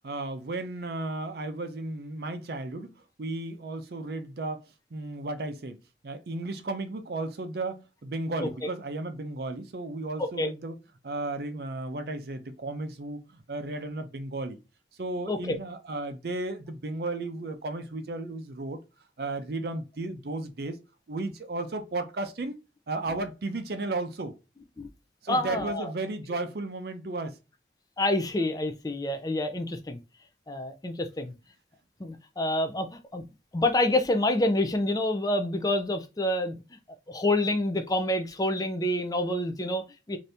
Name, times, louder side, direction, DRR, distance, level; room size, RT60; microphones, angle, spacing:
voice 1, 0.0-2.9 3.2-4.6 4.9-5.8 6.0-10.8 11.0-14.6 15.0-18.8 19.2-20.8 21.1-22.6 22.9-24.3 25.2-27.4, right 2 dB, 55° right, 0.5 m, -34 dB
voice 2, 25.3-25.9 28.0-30.0 30.5-31.3 32.0-33.2 33.5-36.6 37.1-40.2, left 1 dB, 20° left, 0.4 m, -27 dB
2.7 x 2.7 x 3.3 m
head